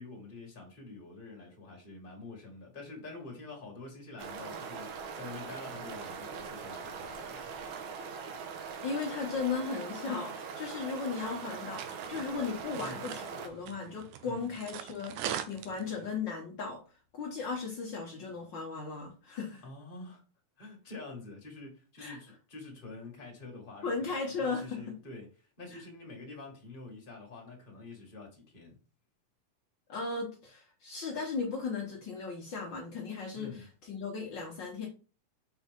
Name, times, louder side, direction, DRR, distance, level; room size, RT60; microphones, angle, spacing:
voice 1, 0.0-7.7 12.8-13.0 14.2-14.5 19.6-20.2 20.6-28.8 33.3-33.7, left 3 dB, 20° left, 1.5 m, -47 dB
sound 1, 4.2-13.5, right 6 dB, 70° right, 2.1 m, -41 dB
voice 2, 8.8-16.8 17.1-19.6 22.0-22.2 23.8-25.0 29.9-34.9, left 4 dB, 75° left, 1.0 m, -36 dB
sound 2, 11.2-16.2, right 10 dB, 90° right, 2.3 m, -42 dB
6.2 x 4.8 x 3.6 m
omnidirectional pair, 3.7 m